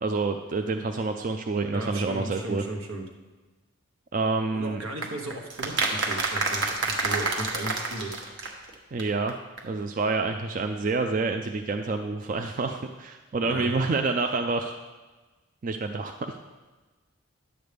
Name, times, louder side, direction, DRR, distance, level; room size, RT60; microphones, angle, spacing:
voice 1, 0.0-2.6 4.1-4.8 8.9-9.3 9.6-14.8 15.6-16.1, right 3 dB, 40° right, 6 dB, 0.3 m, -28 dB
voice 2, 1.7-3.1 4.5-8.2 13.4-13.7, right 1 dB, 80° right, 2 dB, 1.2 m, -35 dB
sound 1, 5.0-8.7 9.0-9.1 9.3-9.4 9.6-9.7, right 3 dB, 60° right, 1.1 m, -28 dB
10.5 x 8.0 x 3.4 m, 1.3 s
head